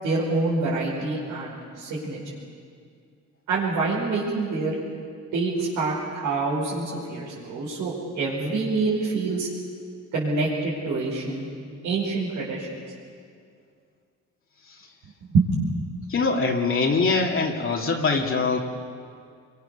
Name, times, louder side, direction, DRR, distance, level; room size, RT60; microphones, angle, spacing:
voice 1, 0.0-2.2 3.5-4.8 5.3-9.5 10.1-11.5 11.8-12.7 15.3-15.5, right 3 dB, 85° right, -7 dB, 5.4 m, -26 dB
voice 2, 16.1-18.6, left 4 dB, 45° left, 0 dB, 2.7 m, -23 dB
26.5 x 23.5 x 6.9 m, 2.2 s
cardioid pair, 90°, 30 cm